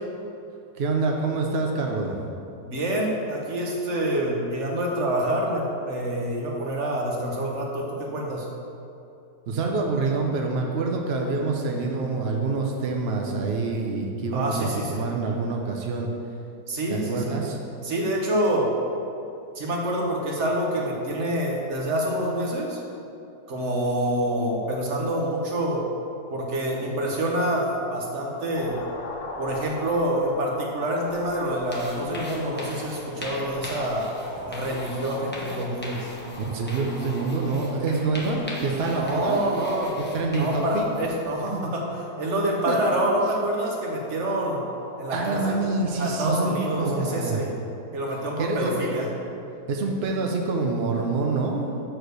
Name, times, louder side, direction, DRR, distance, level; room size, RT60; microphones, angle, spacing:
voice 1, 0.7-2.2 9.5-16.1 16.9-17.6 36.4-39.4 40.0-40.9 41.5-41.7 42.7-42.8 45.1-47.4 48.4-48.9 49.7-51.7, right 3 dB, 70° right, 1 dB, 0.6 m, -26 dB
voice 2, 2.6-8.5 14.3-15.0 16.7-17.4 17.8-18.7 19.5-22.8 23.5-25.8 26.3-28.8 29.4-34.1 34.5-36.1 38.6-40.0 40.3-44.6 45.0-45.6 46.0-47.5 47.9-49.1, right 1 dB, 45° right, -1 dB, 1.2 m, -27 dB
sound 1, 28.5-47.0, left 2 dB, 55° left, 1.2 m, -42 dB
sound 2, 31.1-41.3, left 1 dB, 10° left, 0.4 m, -41 dB
6.4 x 4.6 x 6.6 m, 2.7 s
omnidirectional pair, 2.0 m